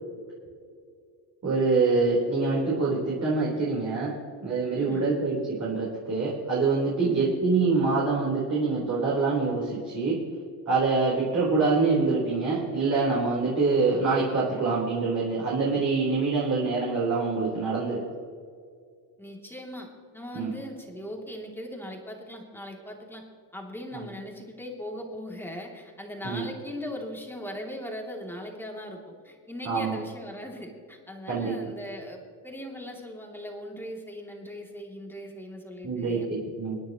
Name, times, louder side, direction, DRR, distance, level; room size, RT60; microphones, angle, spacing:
voice 1, 1.4-4.1 4.4-10.2 10.7-18.0 20.3-20.5 23.9-24.1 26.2-26.4 29.6-30.0 31.3-31.5 35.8-36.8, right 3 dB, 35° right, -6 dB, 3.9 m, -25 dB
voice 2, 4.8-5.1 7.0-7.3 19.2-23.2 23.5-36.3, equal, 5° left, 0 dB, 2.7 m, -39 dB
27.5 x 10.0 x 3.0 m, 2.2 s
supercardioid pair, 110°, 48 cm